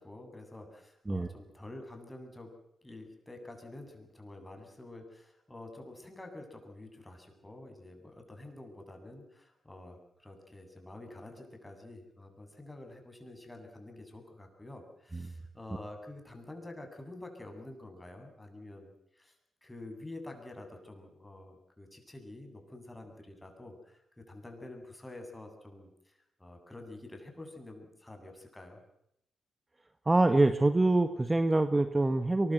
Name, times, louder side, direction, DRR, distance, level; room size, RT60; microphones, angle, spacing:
voice 1, 0.0-2.5 2.8-19.3 19.6-28.8, left 2 dB, 15° left, 4 dB, 7.9 m, -48 dB
voice 2, 30.0-32.5, right 2 dB, 25° right, 9 dB, 1.6 m, -25 dB
23.0 x 21.0 x 8.0 m, 0.79 s
hypercardioid pair, 45°, 0 cm